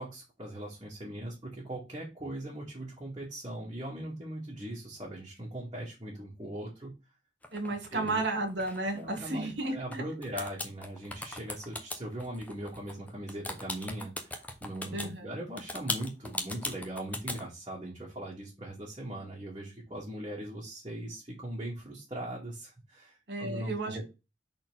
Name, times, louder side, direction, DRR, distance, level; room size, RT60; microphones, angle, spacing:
voice 1, 0.0-6.9 7.9-8.2 8.9-24.0, right 1 dB, 25° right, 2.2 m, -40 dB
sound 1, 7.4-10.0 10.2-15.1 15.6-17.4, left 2 dB, 10° left, 0.8 m, -38 dB
voice 2, 7.5-10.0 14.9-15.3 23.3-24.0, right 2 dB, 65° right, 1.8 m, -33 dB
4.3 x 4.1 x 5.6 m
head